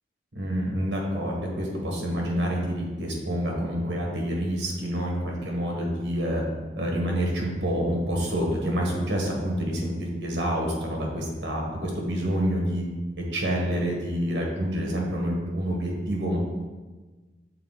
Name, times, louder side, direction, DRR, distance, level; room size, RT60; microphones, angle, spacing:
voice 1, 0.3-6.4 6.7-12.8 13.3-16.4, equal, 80° right, -1 dB, 1.5 m, -27 dB
6.8 x 4.0 x 4.0 m, 1.3 s
head